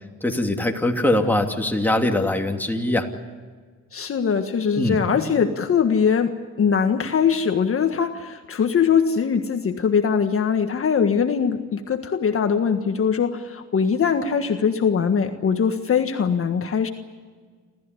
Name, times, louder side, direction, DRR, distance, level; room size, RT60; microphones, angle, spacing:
voice 1, 0.2-3.1 4.8-5.4, left 1 dB, 5° left, 2 dB, 2.9 m, -22 dB
voice 2, 3.9-16.9, left 6 dB, 45° left, 6 dB, 1.6 m, -21 dB
28.5 x 14.0 x 9.8 m, 1.5 s
cardioid pair, 90°, 30 cm